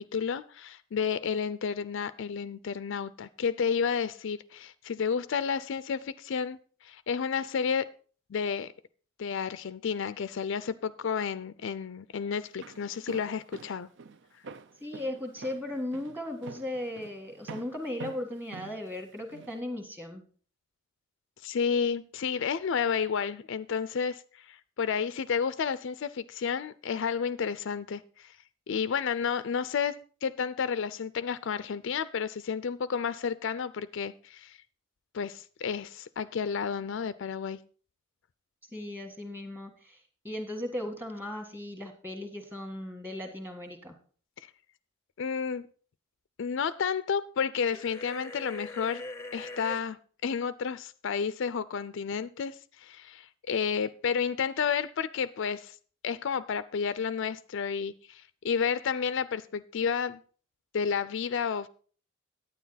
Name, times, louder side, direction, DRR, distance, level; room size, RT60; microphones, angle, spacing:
voice 1, 0.0-7.9 8.3-8.7 9.2-13.9 21.4-28.3 28.7-34.6 35.1-37.6 45.2-45.7 46.4-49.0 49.3-55.8 56.0-60.2 60.7-61.7, left 6 dB, 65° left, 0.4 m, -31 dB
Walk footsteps, 12.4-19.6, right 5 dB, 60° right, 0.6 m, -47 dB
voice 2, 14.8-20.2 38.7-40.0 40.2-43.9, left 1 dB, 10° right, 1.7 m, -37 dB
sound 1, 47.7-49.8, left 2 dB, 15° left, 0.7 m, -41 dB
9.5 x 9.4 x 4.0 m
head